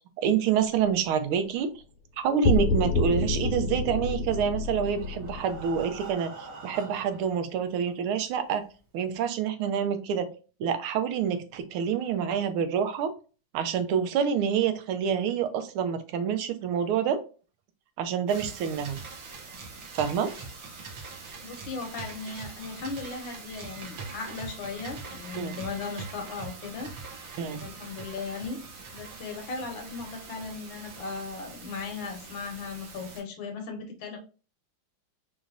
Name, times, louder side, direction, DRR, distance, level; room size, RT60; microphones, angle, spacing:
voice 1, 0.2-1.7 2.2-6.3 6.6-8.6 8.9-10.3 10.6-13.1 13.5-17.2 18.0-19.0 19.9-20.3 25.3-25.5 27.4-27.6, right 7 dB, 80° right, 8 dB, 1.5 m, -27 dB
sound 1, 2.4-6.1, left 3 dB, 90° left, 1.5 m, -28 dB
Breathing, 4.4-7.4 8.1-8.2 8.6-8.7 9.1-9.2, right 4 dB, 40° right, 1.7 m, -44 dB
sound 2, 18.3-33.2, right 4 dB, 55° right, 1.3 m, -43 dB
voice 2, 21.4-26.9 27.5-28.6 28.9-34.2, left 4 dB, 70° left, 4 dB, 1.5 m, -37 dB
4.8 x 2.6 x 2.5 m, 0.35 s
omnidirectional pair, 2.4 m